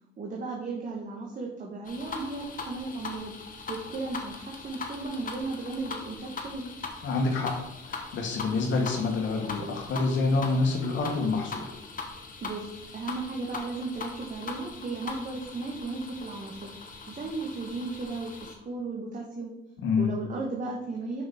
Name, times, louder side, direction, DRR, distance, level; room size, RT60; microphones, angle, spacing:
voice 1, 0.2-3.3 3.7-6.7 12.4-16.7 17.1-19.6 20.0-21.2, right 3 dB, 40° right, -1 dB, 1.1 m, -35 dB
sound 1, 1.8-18.6, left 4 dB, 45° left, 1.2 m, -41 dB
voice 2, 7.0-7.5 7.8-11.7 19.8-20.2, left 3 dB, 70° left, 2 dB, 1.3 m, -27 dB
5.8 x 5.2 x 4.0 m, 0.89 s
cardioid pair, 90°, 20 cm